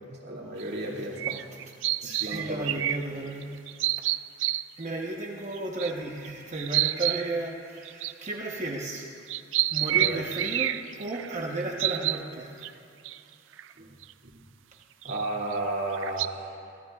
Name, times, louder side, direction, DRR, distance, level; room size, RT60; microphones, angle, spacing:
voice 1, 0.0-1.4 2.0-2.7 10.0-10.2 13.8-13.9 15.0-16.6, right 2 dB, 60° right, -3 dB, 2.4 m, -33 dB
sound 1, 0.6-0.7 1.2-3.0 3.4-4.9 5.6-5.9 6.2-6.3 6.5-7.2 7.9-8.7 9.3-11.3 11.8-12.2 12.6-12.7 13.0-13.2 13.6-13.7 14.0-14.1 15.0-15.5 15.9-16.3, right 14 dB, 75° right, 0.4 m, -28 dB
voice 2, 1.0-1.6 2.0-3.6 4.8-9.1 9.7-12.7, right 2 dB, 40° right, -1 dB, 1.0 m, -34 dB
23.0 x 16.0 x 2.4 m, 2.5 s
head